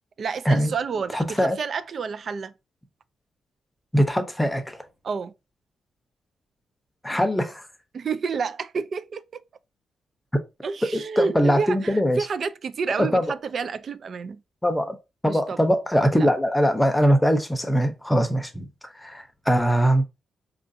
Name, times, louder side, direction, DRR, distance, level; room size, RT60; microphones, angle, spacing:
voice 1, 0.2-2.5 5.0-5.3 7.9-9.2 10.6-14.4 15.3-15.6 16.1-16.3, right 5 dB, 50° right, 0.3 m, -29 dB
voice 2, 1.1-1.6 3.9-4.8 7.0-7.6 10.9-12.2 13.0-13.3 14.6-15.0 15.2-18.7 19.0-20.0, equal, 5° left, 0.6 m, -21 dB
4.6 x 2.5 x 2.6 m
cardioid pair, 105°, 0 cm